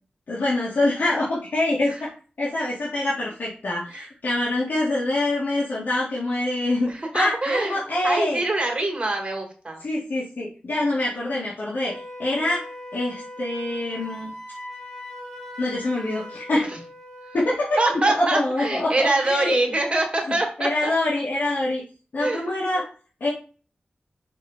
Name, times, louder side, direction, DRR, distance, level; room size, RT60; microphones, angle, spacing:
voice 1, 0.3-2.1 2.4-8.4 9.8-12.6 12.9-14.3 15.6-16.7 17.3-19.6 20.3-21.8 22.1-22.9 23.2-23.3, left 2 dB, 65° left, -7 dB, 2.5 m, -25 dB
voice 2, 6.9-9.8 16.5-16.6 17.8-20.9 22.2-22.5, right 2 dB, 30° right, 2 dB, 2.6 m, -24 dB
Wind instrument woodwind instrument, 11.8-18.1, left 1 dB, 15° left, 3.2 m, -40 dB
6.3 x 4.3 x 5.2 m, 0.37 s
wide cardioid pair, 100°, 3 cm